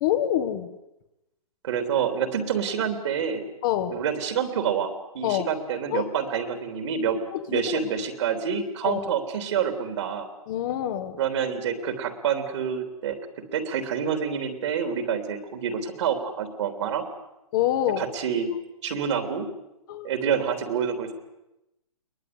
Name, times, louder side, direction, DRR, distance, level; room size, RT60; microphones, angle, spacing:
voice 1, 0.0-0.7 3.6-4.0 5.2-5.5 5.9-6.1 7.3-7.6 8.8-9.0 10.5-11.2 17.5-18.0 19.9-20.1, left 12 dB, 35° left, 7 dB, 1.5 m, -26 dB
voice 2, 1.6-3.5 3.9-7.2 7.5-10.3 11.2-13.2 13.5-17.0 18.0-18.5 18.8-19.5 20.0-21.1, right 7 dB, 50° right, 7 dB, 3.3 m, -27 dB
22.5 x 19.5 x 9.5 m, 0.92 s
hypercardioid pair, 155°, 19 cm